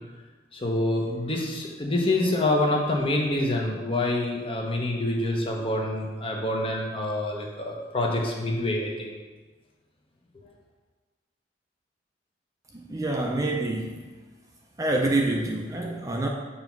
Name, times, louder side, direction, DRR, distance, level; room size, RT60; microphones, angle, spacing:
voice 1, 0.5-9.1, left 1 dB, 30° left, -1 dB, 0.9 m, -26 dB
voice 2, 12.7-14.0 14.8-16.3, right 2 dB, 20° right, 0 dB, 0.5 m, -27 dB
7.2 x 2.8 x 5.9 m, 1.3 s
head